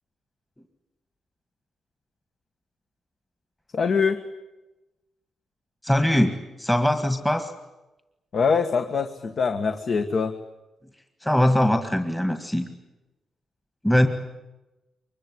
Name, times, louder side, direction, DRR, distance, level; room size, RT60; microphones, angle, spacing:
voice 1, 3.7-4.2 8.3-10.4, left 5 dB, 50° left, 7 dB, 1.6 m, -23 dB
voice 2, 5.8-7.5 11.2-12.6 13.8-14.1, left 1 dB, 5° left, 6 dB, 1.8 m, -21 dB
24.5 x 22.0 x 9.7 m, 1.0 s
cardioid pair, 135°, 0 cm